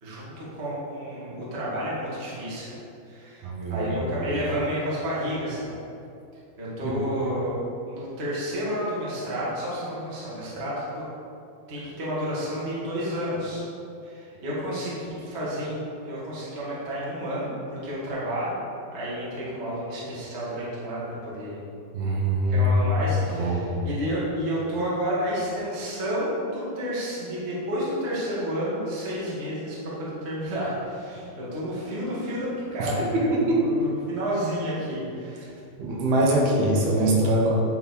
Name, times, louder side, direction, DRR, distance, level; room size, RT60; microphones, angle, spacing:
voice 1, 0.0-3.4 3.7-5.7 6.6-7.6 7.9-11.0 11.7-13.6 14.0-18.5 18.9-21.6 22.5-35.5, equal, 50° right, -8 dB, 0.7 m, -30 dB
voice 2, 3.4-4.1 6.8-7.0 21.9-22.8 23.3-23.7 32.8-33.7 35.8-37.5, right 1 dB, 75° right, -2 dB, 2.9 m, -23 dB
9.6 x 4.4 x 4.0 m, 2.6 s
omnidirectional pair, 4.6 m